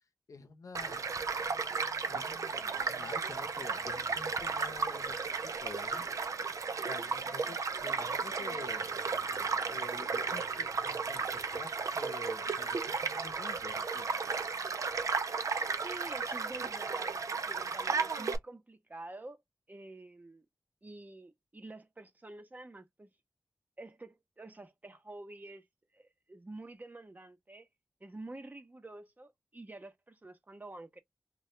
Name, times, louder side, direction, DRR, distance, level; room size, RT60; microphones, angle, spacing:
voice 1, 0.3-1.0 2.1-5.1 5.4-6.1 6.9-8.9 9.7-14.1, left 4 dB, 80° left, 0.7 m, -48 dB
Child speech kid speaking / Stream / Car passing by, 0.7-18.4, right 5 dB, 75° right, 0.5 m, -34 dB
voice 2, 15.8-19.4 19.7-20.5 20.8-23.1 23.8-25.7 25.9-27.7 28.0-31.0, right 2 dB, 30° right, 0.8 m, -48 dB
2.7 x 2.3 x 3.2 m
wide cardioid pair, 65°, 6 cm